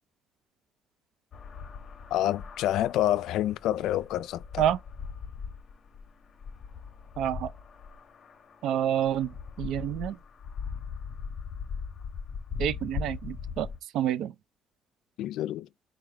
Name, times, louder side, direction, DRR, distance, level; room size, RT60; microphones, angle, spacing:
sound 1, 1.3-13.8, left 6 dB, 45° left, 0.7 m, -40 dB
voice 1, 2.1-4.6 15.2-15.7, left 13 dB, 75° left, 0.3 m, -28 dB
voice 2, 7.2-7.5 8.6-10.2 12.6-13.7 13.9-14.3, right 10 dB, 75° right, 0.4 m, -28 dB
3.8 x 2.3 x 4.6 m
cardioid pair, 110°, 0 cm